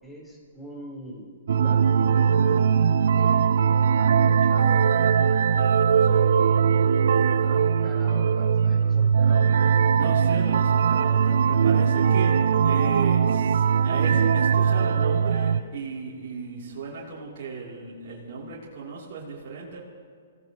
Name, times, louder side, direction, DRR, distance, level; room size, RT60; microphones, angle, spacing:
voice 1, 0.0-2.6 3.1-3.4 4.0-4.8 7.3-9.6, equal, 5° left, -3 dB, 3.9 m, -42 dB
sound 1, 1.5-15.6, right 7 dB, 65° right, 0.5 m, -20 dB
voice 2, 5.6-6.4 9.9-19.8, right 4 dB, 50° right, -6 dB, 3.1 m, -36 dB
27.5 x 16.5 x 3.0 m, 2.2 s
hypercardioid pair, 125°, 0 cm